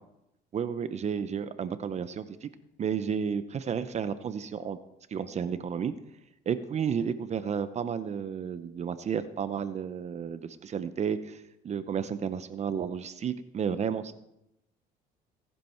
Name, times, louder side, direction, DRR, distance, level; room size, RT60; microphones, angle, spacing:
voice 1, 0.5-2.5 2.8-4.8 5.1-5.9 6.5-14.1, right 7 dB, 40° right, 12 dB, 0.8 m, -32 dB
18.0 x 11.0 x 4.5 m, 0.84 s
cardioid pair, 110°, 17 cm